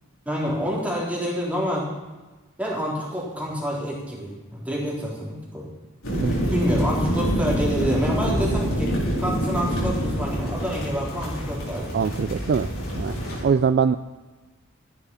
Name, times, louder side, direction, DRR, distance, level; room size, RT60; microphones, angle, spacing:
voice 1, 0.3-1.9 2.6-5.6 6.5-12.0, equal, 5° right, -4 dB, 3.8 m, -28 dB
sound 1, 6.0-13.4, equal, 70° left, 4.9 m, -26 dB
voice 2, 11.9-12.7 12.9-13.2 13.4-14.0, right 6 dB, 50° right, 12 dB, 0.4 m, -22 dB
14.5 x 11.0 x 5.6 m, 1.2 s
head